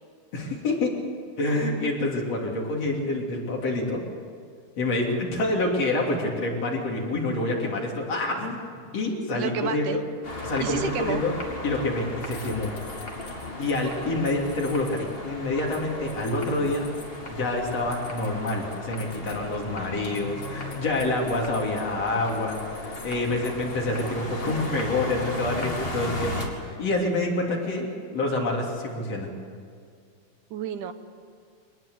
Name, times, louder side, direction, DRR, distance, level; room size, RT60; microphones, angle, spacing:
voice 1, 0.3-0.9 1.4-4.0 4.8-8.6 8.9-10.0 10.4-11.3 11.6-12.8 13.6-16.9 17.3-29.3, left 2 dB, 55° left, -1 dB, 4.2 m, -27 dB
voice 2, 9.3-10.0 10.6-11.2 30.5-30.9, right 9 dB, 80° right, 9 dB, 2.5 m, -30 dB
sound 1, 10.2-26.5, left 1 dB, 20° left, 2.6 m, -36 dB
sound 2, 12.2-15.2 15.7-19.9 20.2-21.9 22.3-24.1 24.4-24.8 25.1-25.2 25.6-25.9, left 5 dB, 90° left, 4.3 m, -49 dB
23.5 x 19.5 x 8.0 m, 2.2 s
omnidirectional pair, 3.5 m